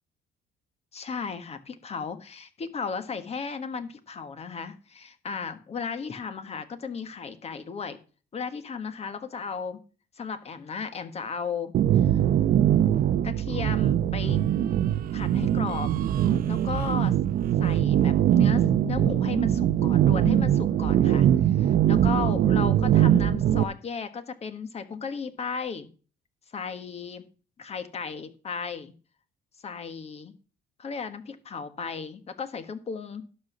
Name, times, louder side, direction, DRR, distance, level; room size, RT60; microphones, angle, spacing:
voice 1, 0.9-8.0 8.3-9.8 10.2-12.2 13.2-14.4 15.1-15.9 16.5-17.1 17.6-25.9 26.5-27.2 27.6-28.9 29.6-30.3 30.8-33.2, left 5 dB, 40° left, 10 dB, 1.4 m, -35 dB
sound 1, 11.7-23.6, right 11 dB, 60° right, 0.7 m, -22 dB
11.5 x 5.5 x 6.1 m, 0.37 s
cardioid pair, 110°, 17 cm